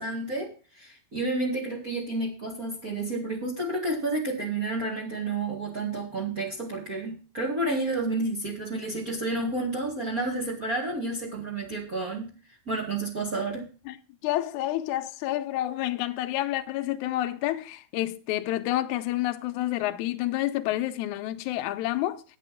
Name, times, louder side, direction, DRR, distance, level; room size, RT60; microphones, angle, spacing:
voice 1, 0.0-12.3 12.6-13.7, right 2 dB, 35° right, 1.5 m, -30 dB
voice 2, 14.2-22.2, left 14 dB, 90° left, 1.7 m, -29 dB
9.0 x 8.3 x 5.8 m
omnidirectional pair, 4.4 m